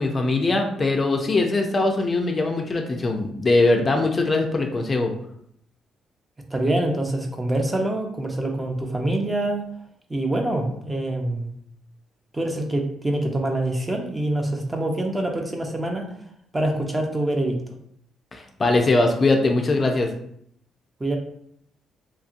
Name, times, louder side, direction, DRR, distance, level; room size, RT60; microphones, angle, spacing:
voice 1, 0.0-5.1 18.3-20.1, left 2 dB, 35° left, 3 dB, 0.4 m, -21 dB
voice 2, 6.5-9.7 10.1-11.5 12.3-16.1 16.5-17.6 21.0-21.2, right 1 dB, 20° right, 2 dB, 0.6 m, -25 dB
2.9 x 2.6 x 2.5 m, 0.69 s
cardioid pair, 90°, 0 cm